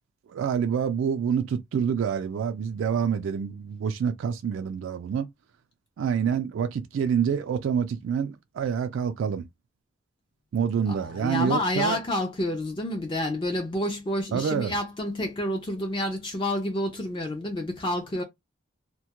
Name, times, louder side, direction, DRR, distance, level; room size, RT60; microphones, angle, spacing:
voice 1, 0.3-5.3 6.0-9.5 10.5-12.0 14.3-14.7, right 7 dB, 80° right, 0.3 m, -27 dB
voice 2, 10.9-18.2, left 1 dB, 25° left, 0.4 m, -29 dB
2.2 x 2.1 x 2.8 m
head